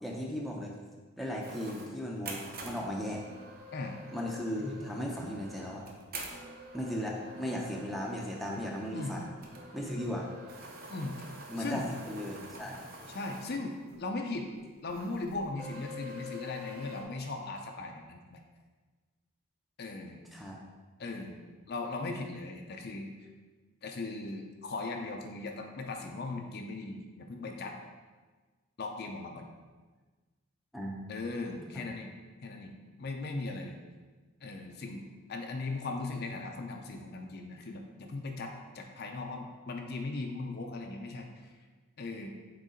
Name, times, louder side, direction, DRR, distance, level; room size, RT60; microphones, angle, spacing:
voice 1, 0.0-0.7 1.2-3.2 4.1-5.8 6.7-9.2 9.7-10.3 11.5-12.8 20.3-20.6 30.7-31.0 31.7-31.8, equal, ahead, -2 dB, 0.6 m, -36 dB
sound 1, 1.4-14.0 14.3-14.4 14.9-17.0, equal, 40° right, 0.8 m, -47 dB
voice 2, 11.6-11.9 13.1-13.7 14.0-14.5 14.8-18.4 19.8-20.2 21.0-21.4 21.7-23.1 23.8-27.8 28.8-29.5 31.1-32.1 32.4-32.7 33.0-33.7 34.4-35.0 35.3-41.5 42.0-42.3, left 3 dB, 45° left, 3 dB, 0.5 m, -38 dB
6.6 x 4.0 x 3.7 m, 1.4 s
head